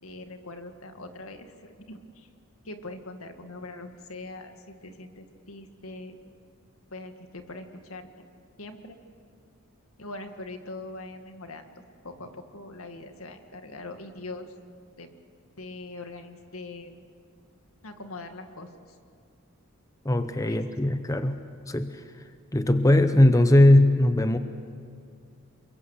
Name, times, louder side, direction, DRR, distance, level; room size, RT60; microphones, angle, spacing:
voice 1, 0.0-2.3 2.6-6.2 6.9-8.1 8.6-9.0 10.0-11.7 12.0-14.5 15.0-15.1 15.6-17.0 17.8-19.0 20.4-20.6, left 2 dB, 80° left, 6 dB, 2.1 m, -42 dB
voice 2, 20.0-22.0 22.5-24.4, left 1 dB, 15° left, 9 dB, 0.8 m, -20 dB
29.5 x 22.5 x 8.1 m, 2.3 s
head